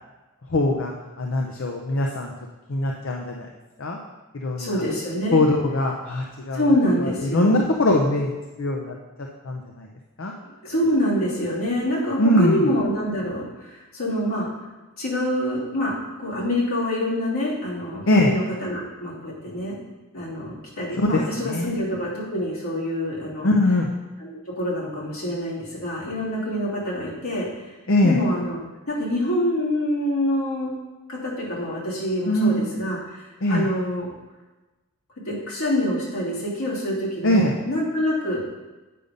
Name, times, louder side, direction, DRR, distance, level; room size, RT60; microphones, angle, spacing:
voice 1, 0.5-0.9 1.2-2.3 2.7-3.5 3.8-4.0 4.3-4.8 5.3-6.6 7.0-8.3 8.6-8.9 9.4-9.9 10.2-10.3 12.2-12.6 18.1-18.3 21.0-21.8 23.4-23.9 27.9-28.2 32.3-32.7 33.4-33.6 37.2-37.5, left 1 dB, 60° left, 1 dB, 0.7 m, -21 dB
voice 2, 4.6-5.5 6.5-7.6 10.4-14.5 15.0-15.9 16.2-19.8 20.1-23.5 24.2-27.7 28.0-28.6 28.9-30.7 31.1-34.1 35.2-38.4, left 1 dB, 80° left, -6 dB, 3.0 m, -26 dB
8.5 x 5.3 x 5.2 m, 1.2 s
head